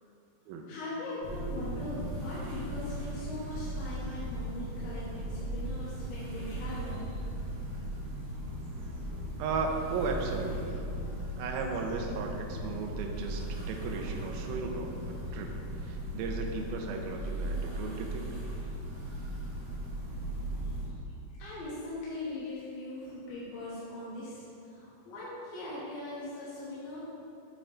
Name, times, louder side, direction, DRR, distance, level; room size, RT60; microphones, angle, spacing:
voice 1, 0.7-7.0 20.9-21.0 21.3-27.0, left 1 dB, 75° left, -9 dB, 3.1 m, -40 dB
sound 1, 1.2-20.9, right 1 dB, 60° right, 1.7 m, -37 dB
voice 2, 9.4-10.8 11.4-18.3, right 4 dB, 80° right, 2 dB, 2.3 m, -36 dB
9.7 x 3.9 x 3.8 m, 2.7 s
omnidirectional pair, 4.4 m